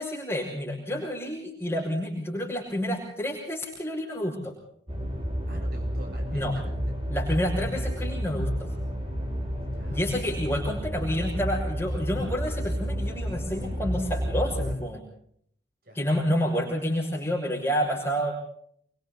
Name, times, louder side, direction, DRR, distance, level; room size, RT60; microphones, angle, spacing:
voice 1, 0.0-4.5 6.3-6.6 7.1-8.7 9.9-15.0 15.9-18.3, equal, 10° left, -5 dB, 6.3 m, -29 dB
sound 1, 4.9-14.7, equal, 30° right, 7.0 m, -31 dB
voice 2, 5.5-7.0 9.7-10.4 15.8-16.3, right 1 dB, 55° right, 3 dB, 7.6 m, -47 dB
28.0 x 24.5 x 4.2 m, 0.66 s
head